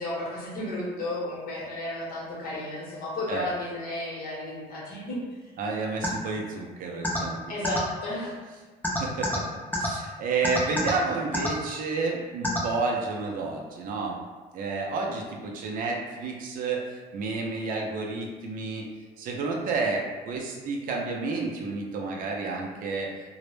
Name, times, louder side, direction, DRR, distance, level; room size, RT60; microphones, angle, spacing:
voice 1, 0.0-5.2 7.5-8.4, left 1 dB, 60° left, -5 dB, 0.8 m, -33 dB
voice 2, 5.6-7.4 9.0-9.4 9.8-14.2 14.5-18.9 19.2-23.1, right 4 dB, 55° right, 0 dB, 0.4 m, -30 dB
sound 1, 6.0-6.1 7.0-7.2 7.6-7.8 8.8-9.4 9.7-9.9 10.4-10.9 11.3-11.5 12.4-12.6, left 1 dB, 10° left, 0.4 m, -26 dB
2.0 x 2.0 x 3.0 m, 1.4 s
cardioid pair, 110°, 17 cm